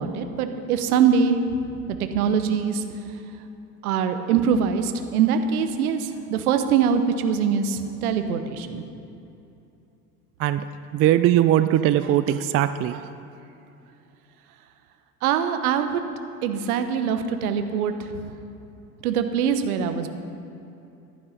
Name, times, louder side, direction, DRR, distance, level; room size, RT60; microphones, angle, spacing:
voice 1, 0.0-1.4 1.9-2.8 3.8-8.8 15.2-16.0 16.4-18.1 19.0-20.1, right 7 dB, 70° right, 8 dB, 1.2 m, -23 dB
voice 2, 10.9-13.0, right 12 dB, 30° right, 12 dB, 0.5 m, -20 dB
14.5 x 11.5 x 5.3 m, 2.8 s
figure-of-eight pair, 70°, 46 cm